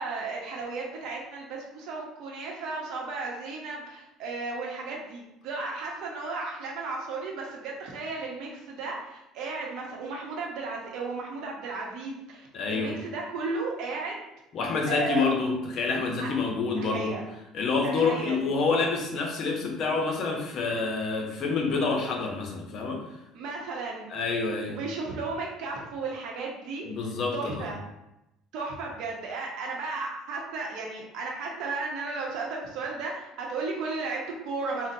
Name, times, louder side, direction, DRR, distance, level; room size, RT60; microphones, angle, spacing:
voice 1, 0.0-14.3 14.9-15.3 16.2-16.3 16.8-17.2 17.8-18.4 23.3-24.1 24.7-26.8 27.3-27.8 28.5-34.9, right 3 dB, 70° right, -2 dB, 0.7 m, -34 dB
voice 2, 12.5-12.9 14.5-17.2 17.5-23.0 24.1-24.8 26.8-27.7, left 4 dB, 50° left, 2 dB, 0.6 m, -27 dB
3.9 x 2.0 x 2.6 m, 0.89 s
cardioid pair, 115°, 0 cm